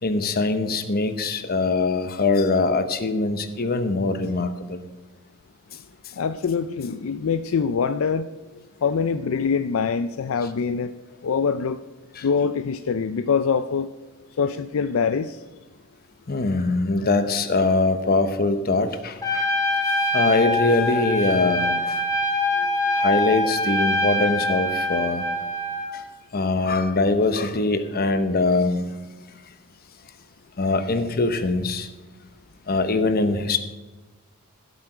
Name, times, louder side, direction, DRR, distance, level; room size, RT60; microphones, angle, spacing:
voice 1, 0.0-4.8 12.2-12.3 16.3-19.4 20.1-21.8 22.9-25.2 26.3-28.8 30.6-31.9 32.7-33.6, left 3 dB, 45° left, 10 dB, 0.9 m, -22 dB
voice 2, 6.1-8.3 8.8-10.9 11.2-11.8 12.2-13.9 14.4-15.4 22.5-23.0, left 6 dB, 70° left, 11 dB, 0.4 m, -24 dB
Trumpet, 19.2-25.9, left 1 dB, 15° left, 1.5 m, -24 dB
15.5 x 8.2 x 5.0 m, 1.2 s
head